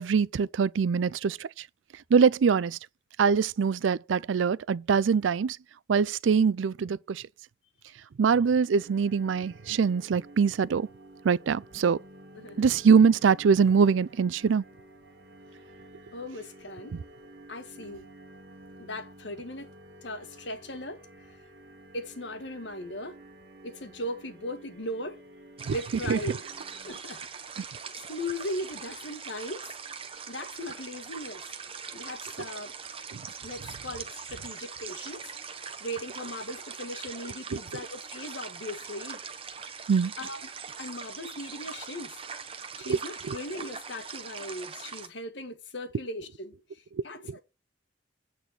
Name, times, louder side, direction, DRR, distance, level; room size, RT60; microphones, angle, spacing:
voice 1, 0.0-1.5 2.1-2.8 3.2-5.6 5.9-7.2 8.2-10.9 11.2-12.0 12.6-14.6 25.7-25.8 26.1-26.2 39.9-40.1 42.9-43.0 43.3-43.4, right 6 dB, 85° right, 0.4 m, -23 dB
sound 1, 8.7-27.0, right 1 dB, 55° right, 2.2 m, -51 dB
voice 2, 16.1-17.0 17.5-18.1 18.8-19.7 20.0-21.0 21.9-23.2 23.6-25.2 25.7-26.4 26.7-27.3 27.6-29.7 30.3-31.5 31.9-32.7 33.4-39.2 40.2-40.5 40.8-42.2 42.7-47.4, left 1 dB, 70° left, 1.5 m, -38 dB
sound 2, 25.6-45.1, right 6 dB, 30° right, 1.1 m, -42 dB
9.2 x 4.3 x 7.3 m
head